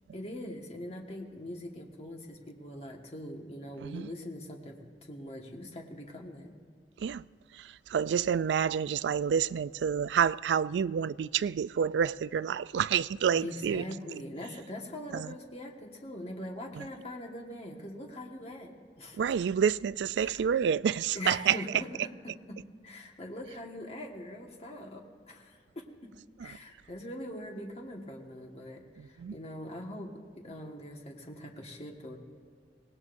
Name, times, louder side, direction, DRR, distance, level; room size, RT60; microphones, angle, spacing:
voice 1, 0.1-6.5 13.3-19.2 20.2-20.5 21.1-22.6 22.8-26.1 26.4-32.2, left 1 dB, 35° left, 1.6 m, -42 dB
voice 2, 7.5-13.8 15.1-15.3 16.8-16.9 19.2-21.6 26.4-26.5 29.0-29.3, right 7 dB, 80° right, 0.3 m, -29 dB
24.5 x 18.5 x 2.6 m
head